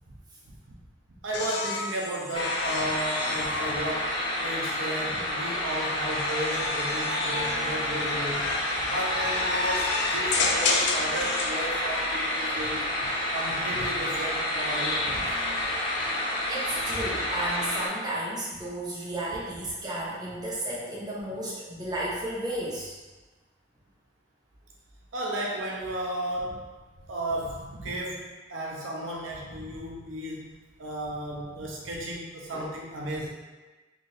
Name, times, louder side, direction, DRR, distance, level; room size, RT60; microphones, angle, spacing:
voice 1, 1.2-8.5 8.8-15.3 25.1-26.6 27.0-30.5 30.8-33.3, right 1 dB, 70° right, -3 dB, 0.6 m, -34 dB
sound 1, 1.3-4.6 5.4-11.6 13.1-13.6, left 4 dB, 55° left, 0.4 m, -32 dB
sound 2, 2.3-17.9, left 1 dB, 25° left, 0.8 m, -29 dB
voice 2, 16.5-23.0 32.5-32.6, right 1 dB, 20° right, -6 dB, 0.7 m, -33 dB
3.0 x 2.6 x 4.0 m, 1.2 s
head